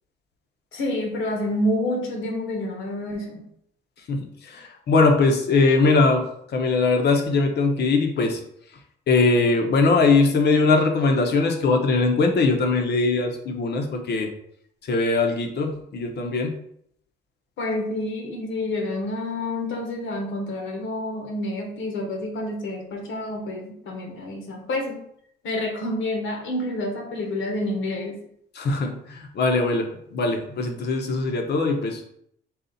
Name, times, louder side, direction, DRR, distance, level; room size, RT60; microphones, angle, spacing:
voice 1, 0.7-3.4 17.6-25.0 25.4-28.2, left 1 dB, 75° left, 1 dB, 1.1 m, -28 dB
voice 2, 4.1-6.2 6.5-8.4 9.1-14.3 14.9-16.5 28.6-32.1, left 3 dB, 60° left, 4 dB, 0.8 m, -21 dB
4.1 x 2.4 x 4.0 m, 0.70 s
cardioid pair, 90°, 20 cm